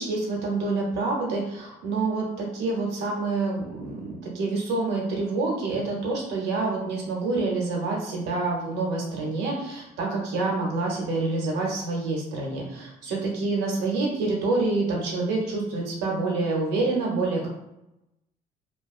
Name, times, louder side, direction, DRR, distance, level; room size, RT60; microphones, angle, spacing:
voice 1, 0.0-17.5, right 3 dB, 85° right, -1 dB, 0.9 m, -27 dB
2.6 x 2.1 x 2.4 m, 0.89 s
cardioid pair, 110°, 17 cm